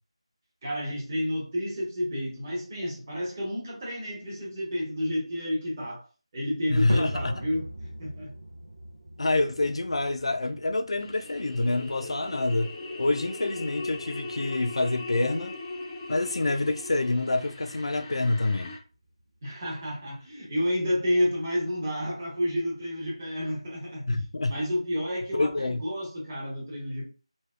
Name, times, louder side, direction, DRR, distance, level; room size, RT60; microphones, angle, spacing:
voice 1, 0.6-6.0 6.3-7.7 8.0-8.3 19.4-24.2 24.5-27.1, equal, 30° right, 1.2 m, -30 dB
voice 2, 6.7-7.3 9.2-12.7 13.0-15.6 16.1-18.7 24.1-24.5 25.3-25.8, left 2 dB, 60° left, 0.4 m, -27 dB
sound 1, 6.9-23.3, right 1 dB, 55° right, 0.5 m, -45 dB
sound 2, 11.0-18.8, left 2 dB, 5° left, 0.5 m, -39 dB
3.3 x 2.2 x 2.4 m
figure-of-eight pair, 165°, 3 cm